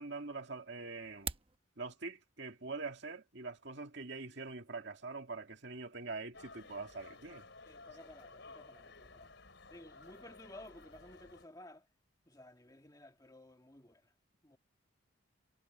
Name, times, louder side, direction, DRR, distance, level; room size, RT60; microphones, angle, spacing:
voice 1, 0.0-1.4 1.8-7.5 7.9-8.0, right 3 dB, 55° right, 2.3 m, -44 dB
sound 1, 1.0-1.6, right 7 dB, 25° right, 1.0 m, -41 dB
sound 2, 6.3-11.4, left 3 dB, 60° left, 5.2 m, -55 dB
voice 2, 7.7-9.3 9.7-11.8 12.3-14.0 14.4-14.6, left 1 dB, 15° left, 1.9 m, -55 dB
head